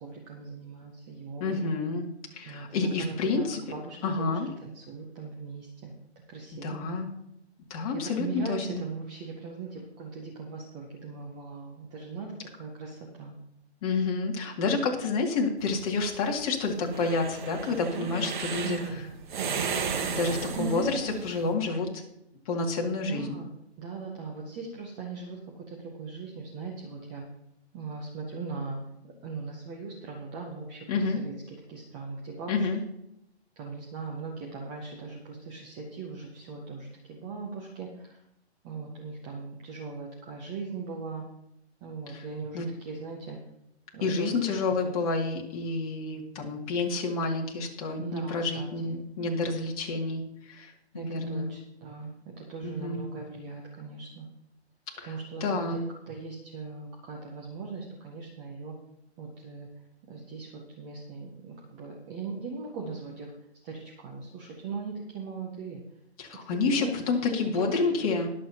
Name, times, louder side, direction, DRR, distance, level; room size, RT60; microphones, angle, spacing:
voice 1, 0.0-1.6 2.4-5.9 6.3-6.8 7.9-12.3 12.6-13.3 17.9-19.1 19.4-20.2 20.5-21.2 23.0-25.4 25.7-27.2 27.7-28.8 29.0-30.9 31.2-31.3 31.7-32.5 33.6-38.2 38.6-41.3 41.8-43.4 43.9-44.3 48.0-49.5 50.9-54.3 55.0-55.8 56.1-58.7 59.2-59.7 60.1-63.3 63.6-65.8 66.7-66.9 67.3-68.0, right 4 dB, 10° right, -1 dB, 0.5 m, -39 dB
voice 2, 1.4-2.1 2.3-3.6 4.0-4.5 6.5-7.1 7.7-8.8 13.8-19.0 20.1-22.0 22.5-23.4 30.9-31.2 32.5-32.8 42.1-42.3 42.5-42.7 44.0-51.5 52.6-53.1 55.0-55.8 66.2-68.3, left 3 dB, 30° left, 0 dB, 2.2 m, -29 dB
sound 1, 15.6-21.4, right 6 dB, 45° right, 1.4 m, -34 dB
21.5 x 7.5 x 2.8 m, 0.80 s
hypercardioid pair, 145°, 34 cm